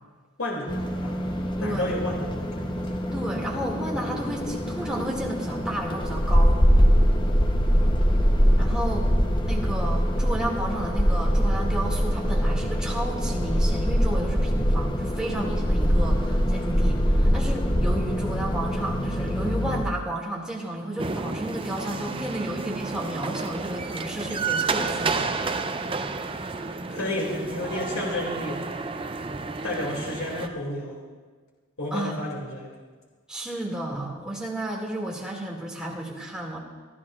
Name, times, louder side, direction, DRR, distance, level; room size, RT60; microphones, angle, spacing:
voice 1, 0.4-1.2 1.6-2.6 26.9-28.8 29.6-31.0 31.8-32.7, left 1 dB, 75° left, -3 dB, 2.6 m, -31 dB
sound 1, 0.7-19.8, equal, 20° left, 0.9 m, -23 dB
voice 2, 1.6-1.9 3.1-6.6 8.6-9.1 9.5-25.2 31.9-32.2 33.3-36.6, right 1 dB, 5° right, -3 dB, 2.2 m, -32 dB
sound 2, 21.0-30.5, right 4 dB, 25° right, 0.6 m, -31 dB
25.0 x 13.5 x 2.5 m, 1.5 s
head